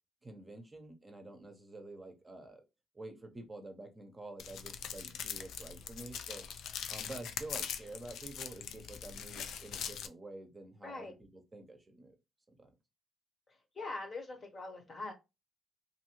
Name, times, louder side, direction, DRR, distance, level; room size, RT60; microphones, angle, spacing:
voice 1, 0.2-2.6 2.9-6.4 6.9-12.1 12.6-12.7, right 2 dB, 20° right, 0.7 m, -48 dB
sound 1, 4.4-10.1, left 8 dB, 75° left, 0.3 m, -42 dB
voice 2, 13.5-15.1, left 3 dB, 40° left, 1.0 m, -43 dB
2.7 x 2.6 x 3.0 m
cardioid pair, 90°, 0 cm